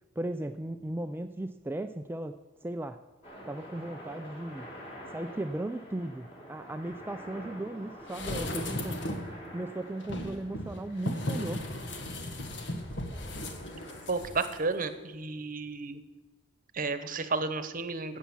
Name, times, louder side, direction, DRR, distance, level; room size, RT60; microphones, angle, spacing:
voice 1, 0.2-2.4 2.6-3.0 3.5-4.7 5.1-9.1 9.5-11.7, right 1 dB, 10° right, 8 dB, 0.4 m, -36 dB
sound 1, 3.2-14.1, equal, 30° left, 3.8 m, -48 dB
sound 2, 8.1-9.4 10.0-14.5 14.8-14.9, left 1 dB, 65° left, 1.5 m, -36 dB
voice 2, 14.1-16.0 16.7-18.2, right 4 dB, 45° right, 11 dB, 1.0 m, -32 dB
13.0 x 8.3 x 7.3 m, 1.1 s
head